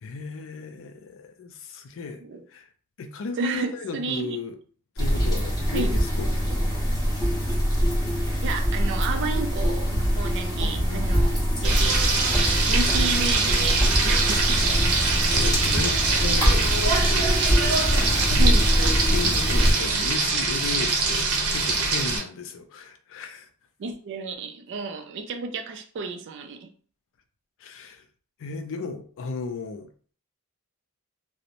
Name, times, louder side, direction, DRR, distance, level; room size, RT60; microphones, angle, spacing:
voice 1, 0.0-2.2 2.5-2.7 3.0-4.6 5.0-6.7 10.5-11.3 15.1-18.4 19.0-23.5 27.6-28.0 28.4-29.9, left 4 dB, 60° left, 0.4 m, -35 dB
voice 2, 3.4-4.4 5.7-6.0 8.4-12.0 12.7-14.6 14.9-15.3 18.4-18.7 23.8-26.7, right 4 dB, 55° right, 0.3 m, -32 dB
sound 1, 5.0-19.7, equal, 20° left, 1.1 m, -23 dB
Frying (food), 11.6-22.2, right 3 dB, 80° right, 0.7 m, -23 dB
3.0 x 2.0 x 2.5 m
head